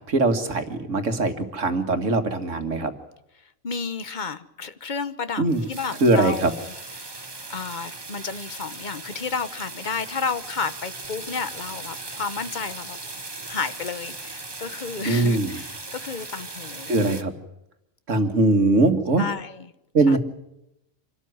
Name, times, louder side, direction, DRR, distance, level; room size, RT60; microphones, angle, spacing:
voice 1, 0.0-2.9 5.4-5.6 6.0-6.5 15.1-15.6 16.9-17.3 18.1-19.3 19.9-20.2, right 2 dB, 70° right, 7 dB, 2.2 m, -21 dB
voice 2, 3.4-6.7 7.0-7.2 7.5-13.0 13.5-17.0 19.2-19.7 20.1-20.2, left 5 dB, 40° left, 13 dB, 1.1 m, -32 dB
sound 1, 5.5-17.2, right 3 dB, 20° right, 1.1 m, -38 dB
26.0 x 13.0 x 9.5 m, 0.87 s
omnidirectional pair, 1.4 m